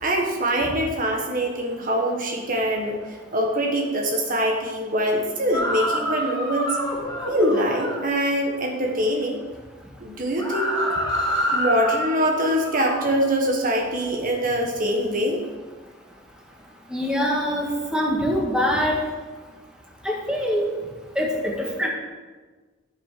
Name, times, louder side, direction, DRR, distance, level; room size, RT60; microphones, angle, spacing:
voice 1, 0.0-3.0 3.3-6.8 7.3-9.4 10.0-10.8 11.5-15.4, equal, 45° right, 1 dB, 1.6 m, -23 dB
sound 1, 5.5-8.0 10.3-13.2, equal, 20° left, 3.4 m, -27 dB
voice 2, 16.9-19.0 20.0-20.7 21.2-21.9, equal, 5° right, -2 dB, 2.0 m, -24 dB
14.0 x 7.7 x 5.9 m, 1.4 s
head